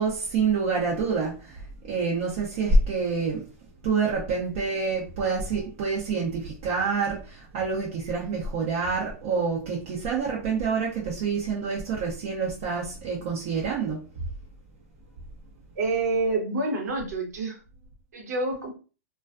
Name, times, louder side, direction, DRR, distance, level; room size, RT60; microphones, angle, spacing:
voice 1, 0.0-3.5 3.8-14.1, right 4 dB, 50° right, 0.7 m, -27 dB
voice 2, 15.8-17.6 18.1-18.7, right 3 dB, 75° right, 1.0 m, -27 dB
2.3 x 2.3 x 2.4 m
hypercardioid pair, 130°, 9 cm